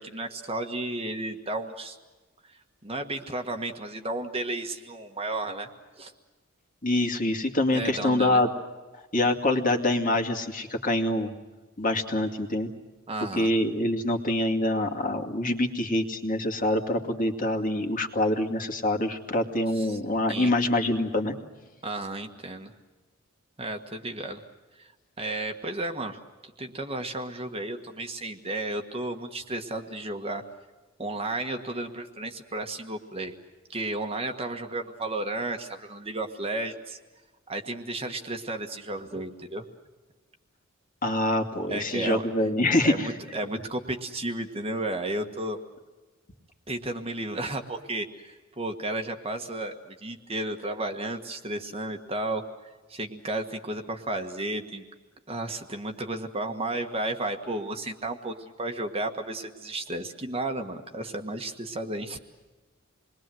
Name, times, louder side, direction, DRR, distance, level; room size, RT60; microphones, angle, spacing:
voice 1, 0.0-2.0 2.4-2.5 2.8-5.7 6.0-6.1 7.7-8.4 13.1-13.5 19.7-20.0 20.3-20.5 21.8-22.7 23.6-24.4 24.8-24.9 25.2-26.2 26.6-30.4 31.0-33.3 33.7-37.0 37.5-39.6 41.7-42.3 42.8-45.6 46.7-54.8 55.3-62.2, right 2 dB, 25° right, 5 dB, 1.5 m, -33 dB
voice 2, 6.8-8.5 9.1-11.3 11.8-12.7 13.4-21.3 41.0-43.1, left 1 dB, 40° left, 4 dB, 2.4 m, -25 dB
28.0 x 21.5 x 7.8 m, 1.2 s
head